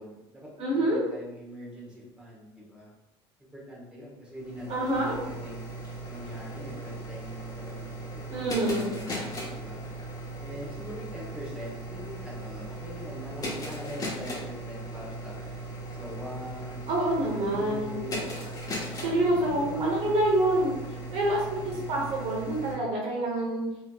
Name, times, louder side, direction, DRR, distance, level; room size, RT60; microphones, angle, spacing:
voice 1, 0.0-2.9 3.5-5.6 6.1-9.8 10.4-15.4 15.9-18.6 19.1-20.3 21.6-22.1, equal, 5° right, -5 dB, 1.5 m, -43 dB
voice 2, 0.6-1.0 4.7-5.2 8.3-8.9 16.9-18.0 19.0-20.8 21.1-23.6, right 1 dB, 55° right, -3 dB, 1.0 m, -27 dB
sound 1, 4.3-22.8, right 1 dB, 30° left, 1.2 m, -38 dB
3.6 x 3.1 x 2.4 m, 0.99 s
supercardioid pair, 80°, 12 cm